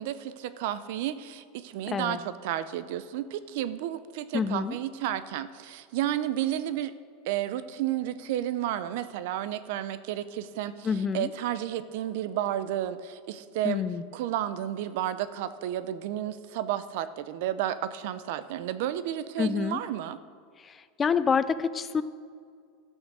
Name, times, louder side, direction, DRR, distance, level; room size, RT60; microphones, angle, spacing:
voice 1, 0.0-6.9 7.3-10.9 11.1-13.8 14.1-20.2, right 12 dB, 60° right, 14 dB, 0.5 m, -32 dB
voice 2, 1.9-2.2 4.3-4.8 10.8-11.3 13.6-14.0 19.4-19.8 20.6-20.7 21.0-22.0, left 6 dB, 20° left, 14 dB, 0.4 m, -27 dB
13.5 x 6.4 x 6.2 m, 2.2 s
supercardioid pair, 155°, 0 cm